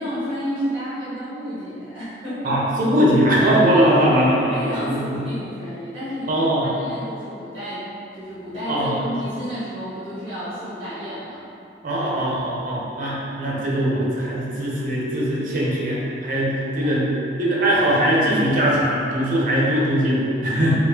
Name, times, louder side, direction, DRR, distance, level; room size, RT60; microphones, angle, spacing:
voice 1, 0.0-2.4 4.5-7.8 8.1-11.4 16.8-16.9 20.7-20.8, equal, 30° right, -12 dB, 1.2 m, -31 dB
voice 2, 2.4-5.2 6.3-6.7 8.7-8.9 11.8-17.1 17.4-20.7, equal, 50° right, -5 dB, 0.7 m, -20 dB
3.9 x 2.4 x 2.7 m, 2.7 s
head